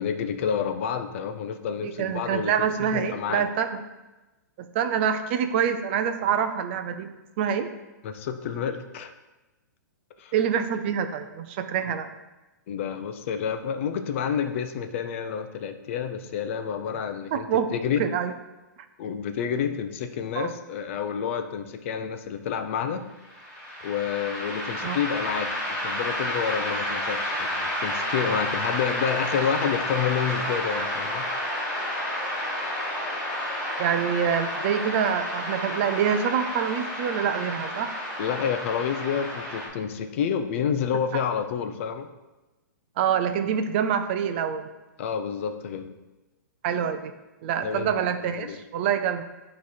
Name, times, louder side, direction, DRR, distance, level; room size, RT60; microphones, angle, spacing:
voice 1, 0.0-2.5 2.8-3.4 8.0-9.1 10.2-10.3 12.7-18.0 19.0-23.0 23.8-25.6 25.8-31.3 38.2-42.1 45.0-45.9 47.6-48.6, left 7 dB, 40° left, 8 dB, 0.6 m, -29 dB
voice 2, 1.8-3.8 4.6-7.1 7.4-7.7 10.3-12.1 17.3-17.7 18.0-18.3 20.4-20.5 24.8-25.0 33.8-38.0 41.1-41.2 43.0-44.7 46.6-47.1 47.4-49.2, right 8 dB, 35° right, 8 dB, 0.5 m, -26 dB
sound 1, 23.3-39.7, left 1 dB, 10° left, 2.0 m, -30 dB
9.4 x 3.2 x 4.3 m, 1.1 s
hypercardioid pair, 160°, 10 cm